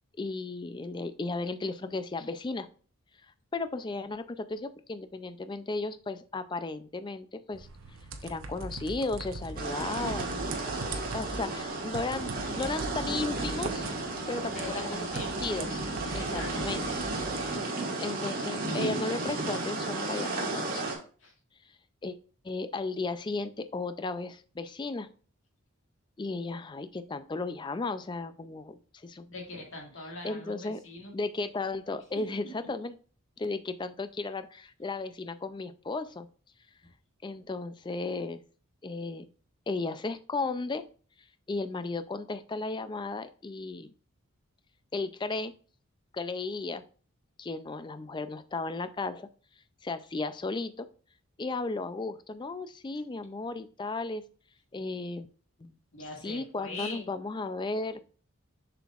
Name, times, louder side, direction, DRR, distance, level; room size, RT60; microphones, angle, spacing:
voice 1, 0.2-2.7 3.5-7.7 8.2-10.4 10.9-13.8 14.3-15.8 16.1-16.9 18.0-21.0 22.0-22.2 22.4-25.1 26.2-29.3 30.2-30.8 31.1-33.0 33.4-36.3 37.2-38.4 38.8-39.2 39.7-40.9 41.5-43.9 44.9-45.5 46.1-46.8 47.4-49.3 49.8-50.9 51.4-54.2 54.7-55.3 55.6-55.8 56.2-58.0, left 3 dB, 20° left, 11 dB, 0.3 m, -35 dB
sound 1, 7.5-17.6, right 3 dB, 65° right, 0.8 m, -41 dB
sound 2, 9.6-20.9, right 2 dB, 40° right, 1.5 m, -33 dB
voice 2, 14.5-15.4 16.1-16.5 21.2-21.3 29.3-31.1 32.6-32.7 55.9-57.1, left 2 dB, 65° left, 0 dB, 1.9 m, -41 dB
7.0 x 5.8 x 2.4 m, 0.41 s
head